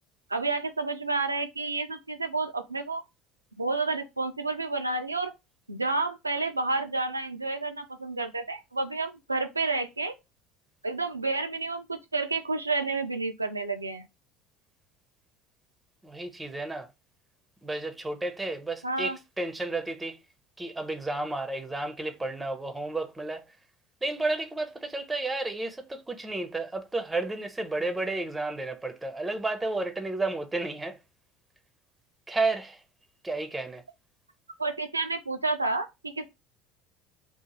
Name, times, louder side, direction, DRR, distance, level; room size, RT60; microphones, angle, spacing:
voice 1, 0.3-3.0 3.6-5.3 5.7-10.1 10.8-14.0 18.8-19.2 34.6-36.3, right 3 dB, 85° right, 0.3 m, -30 dB
voice 2, 16.0-16.9 17.6-20.2 20.6-23.4 24.0-31.0 32.3-32.8 33.2-33.8, right 2 dB, 10° right, 0.5 m, -32 dB
2.7 x 2.0 x 2.9 m
figure-of-eight pair, 65°, 0 cm